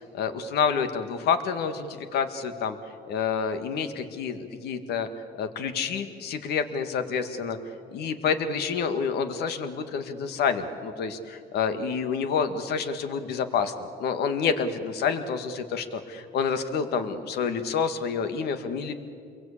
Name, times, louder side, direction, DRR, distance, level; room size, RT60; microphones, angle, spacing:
voice 1, 0.1-2.8 3.1-5.1 5.4-7.6 7.9-18.9, left 6 dB, 75° left, 8 dB, 1.9 m, -28 dB
27.5 x 22.5 x 8.6 m, 2.6 s
cardioid pair, 110°, 17 cm